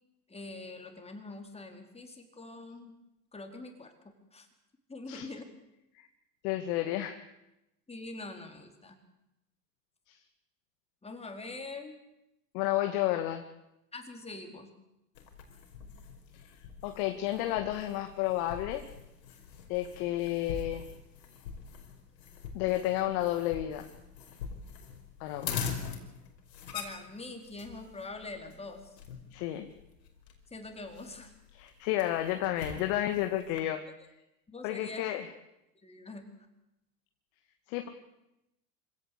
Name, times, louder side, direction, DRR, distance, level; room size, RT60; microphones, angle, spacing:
voice 1, 0.3-2.9 3.3-3.9 4.3-4.5 4.9-5.5 7.9-9.0 11.0-12.0 13.9-14.7 26.7-29.0 30.5-31.3 34.5-35.1 35.8-36.2, left 3 dB, 10° left, 4 dB, 4.4 m, -44 dB
voice 2, 6.4-7.2 10.1-10.2 12.5-13.4 16.8-18.8 19.7-20.8 22.5-23.9 25.2-25.5 29.3-29.7 31.6-33.8 34.6-35.3 37.7-37.9, left 14 dB, 60° left, 6 dB, 2.2 m, -31 dB
sound 1, 15.1-33.6, left 6 dB, 85° left, 5.1 m, -44 dB
26.5 x 17.0 x 8.4 m, 0.90 s
hypercardioid pair, 105°, 49 cm